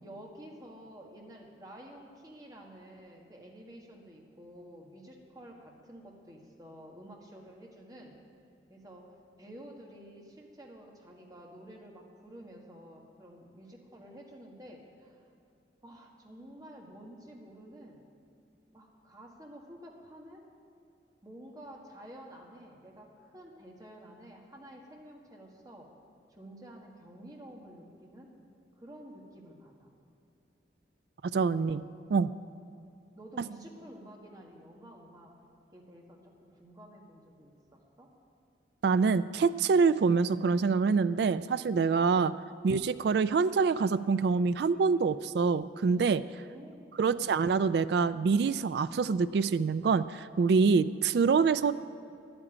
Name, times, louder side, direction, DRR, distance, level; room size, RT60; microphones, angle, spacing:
voice 1, 0.0-8.1 8.7-15.2 15.8-18.0 18.7-20.4 21.2-25.9 26.3-28.3 28.8-29.9 31.6-31.9 32.4-32.6 33.2-35.3 35.7-38.1 46.4-47.3, right 1 dB, 20° right, -1 dB, 1.7 m, -51 dB
voice 2, 31.3-31.8 32.1-32.3 38.8-42.3 42.6-46.2 47.0-51.7, right 5 dB, 60° right, 14 dB, 0.3 m, -25 dB
11.0 x 8.8 x 9.9 m, 2.6 s
head